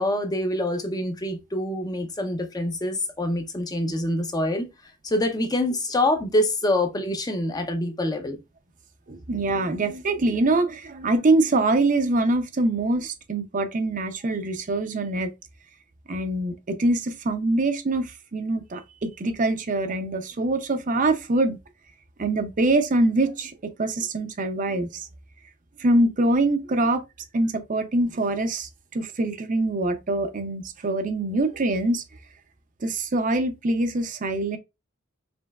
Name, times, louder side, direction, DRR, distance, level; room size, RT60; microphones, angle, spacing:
voice 1, 0.0-4.7 5.0-8.4, left 1 dB, 20° left, 0.6 m, -25 dB
voice 2, 9.1-15.3 16.1-21.6 22.2-25.1 25.8-27.0 27.3-32.0 32.8-34.6, right 2 dB, 40° right, 0.6 m, -24 dB
5.1 x 3.2 x 2.3 m
head